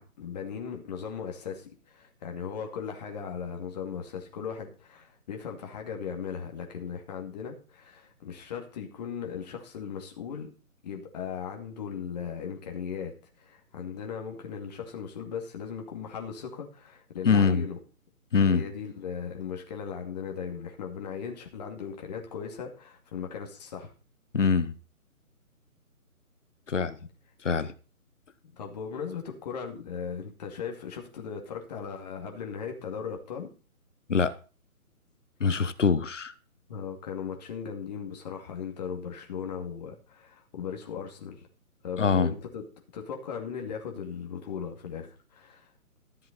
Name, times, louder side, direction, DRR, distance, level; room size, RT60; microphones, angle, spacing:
voice 1, 0.0-10.5 10.8-17.8 18.4-23.9 28.5-33.5 36.7-41.5 41.8-42.7 42.9-45.7, left 7 dB, 30° left, 2.5 m, -38 dB
voice 2, 17.2-17.7 18.3-18.6 24.3-24.7 26.7-27.0 27.4-27.7 34.1-34.3 35.4-36.3 42.0-42.3, left 5 dB, 55° left, 1.3 m, -23 dB
13.5 x 7.5 x 5.3 m
figure-of-eight pair, 145°, 44 cm